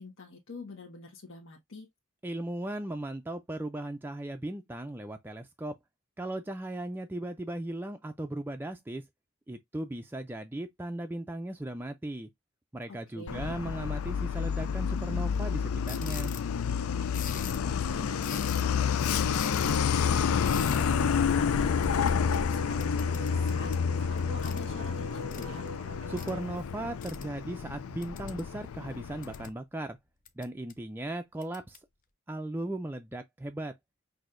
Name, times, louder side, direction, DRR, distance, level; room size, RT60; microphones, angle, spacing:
voice 1, 0.0-1.9 12.9-13.6 17.3-19.4 19.9-25.7, left 4 dB, 75° left, 1.2 m, -46 dB
voice 2, 2.2-5.8 6.2-9.0 9.5-12.3 12.7-16.3 26.1-30.0 30.4-31.8 32.3-33.7, right 1 dB, 10° right, 0.3 m, -37 dB
Truck, 13.3-29.5, left 6 dB, 90° left, 0.4 m, -29 dB
sound 1, 15.9-16.5 17.1-17.7 18.2-18.8 19.3-19.8 20.4-20.8 21.8-23.8 24.4-24.6 25.3-25.4 26.2-26.3 27.0-27.2 28.0-28.5 29.0-29.5 30.2-30.7 31.4-31.8, left 9 dB, 40° left, 0.5 m, -43 dB
Wind instrument woodwind instrument, 16.0-26.5, equal, 75° right, 0.5 m, -46 dB
6.0 x 2.7 x 2.5 m
head